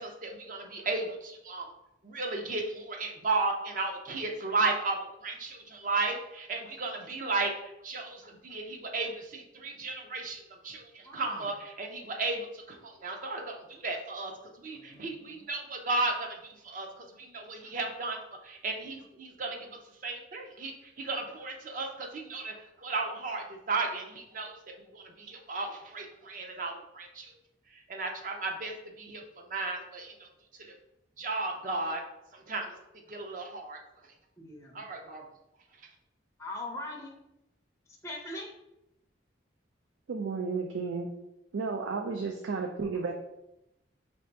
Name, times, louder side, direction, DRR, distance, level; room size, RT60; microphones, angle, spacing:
voice 1, 0.0-1.6 2.0-7.5 7.8-11.5 11.8-14.3 14.6-16.4 16.6-18.2 18.4-19.6 20.0-24.6 24.9-27.3 27.9-29.2 29.5-30.1 31.2-32.0 32.5-32.7 33.1-33.8 34.7-35.2, right 3 dB, 45° right, 2 dB, 0.6 m, -34 dB
voice 2, 11.0-11.5 14.7-15.5 34.4-34.8 36.4-37.1 38.0-38.5, left 1 dB, 15° left, -1 dB, 0.5 m, -41 dB
voice 3, 40.1-41.1 41.5-43.1, right 4 dB, 90° right, 2 dB, 0.4 m, -32 dB
3.3 x 2.7 x 4.5 m, 0.87 s
head